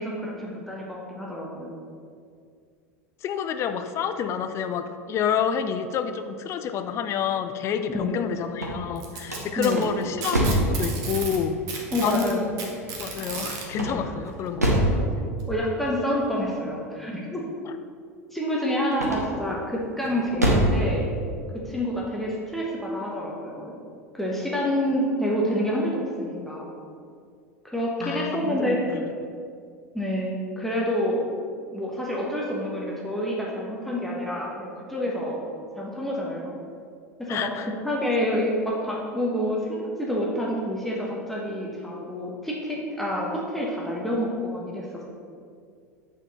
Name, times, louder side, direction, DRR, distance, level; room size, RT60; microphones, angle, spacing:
voice 1, 0.0-1.7 7.9-8.3 9.6-10.0 11.9-12.5 15.5-17.5 18.3-21.0 21.6-23.7 24.1-26.7 27.6-29.0 29.9-31.3 31.7-35.4 35.8-36.5 37.2-45.0, equal, ahead, -4 dB, 1.2 m, -28 dB
voice 2, 3.2-11.5 12.0-12.6 13.0-14.8 28.0-29.1 37.3-37.7, left 7 dB, 35° left, 9 dB, 0.5 m, -28 dB
sound 1, 8.4-10.8 13.7-15.0 18.9-19.5 20.0-20.8, right 1 dB, 85° right, 1.2 m, -24 dB
Packing tape duct tape, 9.0-11.4 11.7-13.6 14.8-14.9 15.4-15.5 16.3-16.4, right 4 dB, 45° right, 1.4 m, -34 dB
8.7 x 4.6 x 4.2 m, 2.3 s
figure-of-eight pair, 80°, 8 cm